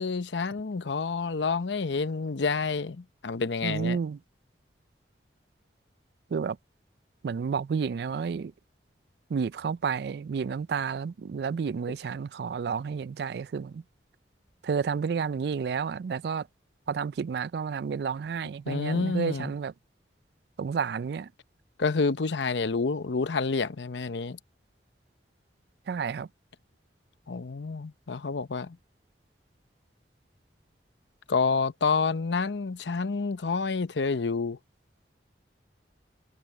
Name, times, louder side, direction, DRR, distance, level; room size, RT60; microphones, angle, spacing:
voice 1, 0.0-4.0 18.7-19.5 21.8-24.4 27.3-28.8 31.3-34.6, left 4 dB, 80° left, 0.7 m, -28 dB
voice 2, 3.6-4.2 6.3-6.6 7.2-8.5 9.3-13.8 14.6-16.5 16.9-19.7 20.6-21.3 25.9-26.3, right 6 dB, 60° right, 0.3 m, -30 dB
head